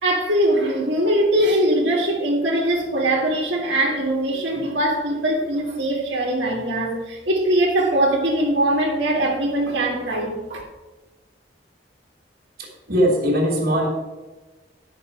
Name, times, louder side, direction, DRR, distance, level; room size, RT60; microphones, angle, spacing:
voice 1, 0.0-10.6, right 1 dB, 85° right, -2 dB, 2.3 m, -21 dB
voice 2, 12.6-13.9, equal, 55° right, -2 dB, 2.6 m, -20 dB
11.0 x 6.6 x 4.6 m, 1.2 s
head